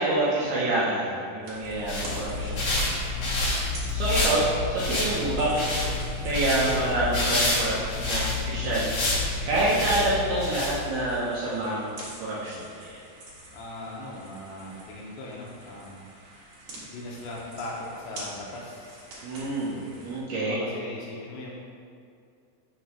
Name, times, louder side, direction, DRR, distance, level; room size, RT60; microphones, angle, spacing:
voice 1, 0.0-3.0 3.2-3.3 3.9-4.4 4.7-5.6 6.2-7.8 8.0-8.9 9.4-13.0 19.2-20.6, right 2 dB, 75° right, -8 dB, 2.4 m, -27 dB
sound 1, 1.4-20.2, right 1 dB, 55° right, 2.6 m, -46 dB
sound 2, 1.6-11.1, left 2 dB, 50° left, 1.9 m, -28 dB
voice 2, 3.2-4.5 13.5-16.0 16.9-19.1 20.4-21.5, left 2 dB, 80° left, -3 dB, 2.7 m, -39 dB
7.0 x 3.8 x 6.2 m, 2.4 s
omnidirectional pair, 5.5 m